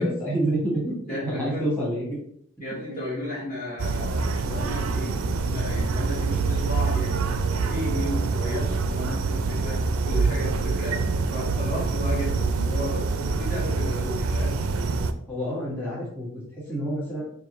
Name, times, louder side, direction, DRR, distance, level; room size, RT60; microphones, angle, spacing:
voice 1, 0.0-0.9 1.2-2.1 2.9-3.0 15.3-16.3 16.6-17.2, right 1 dB, 10° left, -7 dB, 1.5 m, -28 dB
voice 2, 1.1-1.7 2.6-14.6, left 1 dB, 40° left, -5 dB, 1.2 m, -34 dB
sound 1, 3.8-15.1, right 4 dB, 85° right, 0.4 m, -25 dB
4.7 x 2.6 x 3.0 m, 0.68 s
head